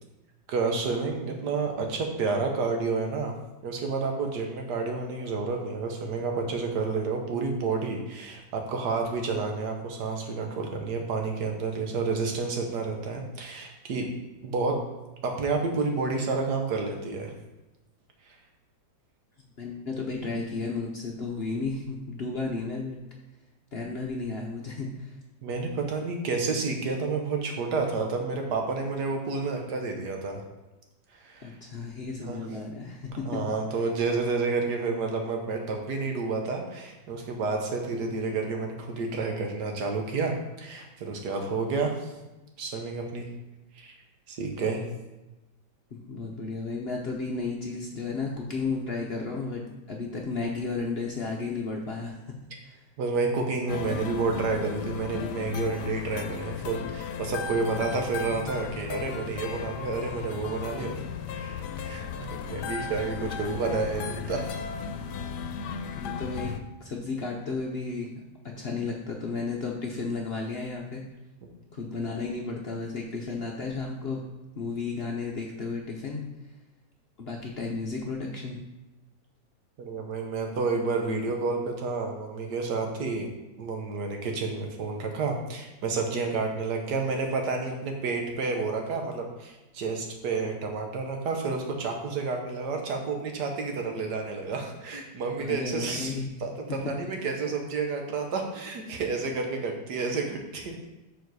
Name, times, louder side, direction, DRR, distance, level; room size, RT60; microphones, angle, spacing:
voice 1, 0.5-3.3 3.6-14.1 14.4-14.8 15.2-17.3 25.4-30.4 31.2-31.6 32.2-32.4 33.2-42.1 42.6-43.3 43.7-43.9 44.3-44.8 53.0-61.0 61.3-64.6 79.8-83.3 83.6-96.1 96.4-100.8, right 4 dB, 75° right, 3 dB, 1.6 m, -30 dB
voice 2, 19.6-23.0 23.7-25.2 31.4-33.4 45.9-49.6 49.9-52.2 52.6-52.8 66.0-66.5 66.8-68.1 68.6-71.0 71.7-74.2 74.6-76.2 77.2-78.6 95.4-96.4 96.7-96.8, left 4 dB, 50° left, -1 dB, 0.8 m, -33 dB
sound 1, 53.7-66.6, left 6 dB, 80° left, 1.2 m, -35 dB
7.0 x 4.6 x 4.7 m, 1.0 s
omnidirectional pair, 1.8 m